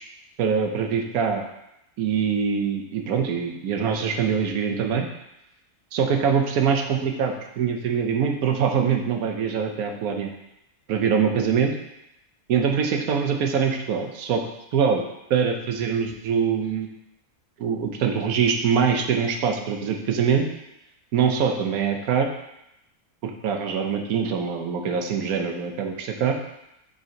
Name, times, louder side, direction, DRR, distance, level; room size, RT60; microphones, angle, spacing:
voice 1, 0.4-1.4 2.0-5.1 5.9-10.3 10.9-11.7 12.5-14.5 14.7-15.0 15.3-16.9 17.6-20.5 21.1-22.3 23.2-26.4, right 6 dB, 90° right, 4 dB, 1.2 m, -23 dB
5.1 x 3.8 x 5.2 m, 0.85 s
omnidirectional pair, 1.5 m